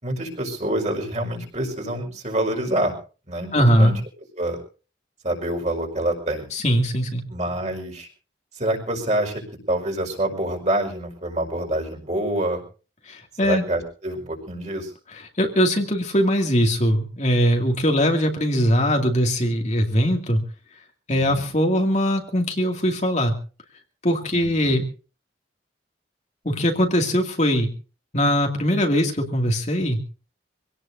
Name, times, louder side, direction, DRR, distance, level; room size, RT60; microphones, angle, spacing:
voice 1, 0.0-2.9 3.3-3.9 4.4-4.6 5.2-6.5 7.3-8.1 8.6-9.4 9.7-12.6 13.4-14.9 21.1-21.5 24.3-24.7, right 1 dB, 35° right, 2 dB, 5.0 m, -26 dB
voice 2, 3.5-3.9 6.5-7.2 13.0-13.6 15.1-20.4 21.1-23.3 24.0-24.9 26.4-27.7 28.1-30.0, equal, 35° left, 2 dB, 2.4 m, -21 dB
25.5 x 18.0 x 2.7 m, 0.36 s
head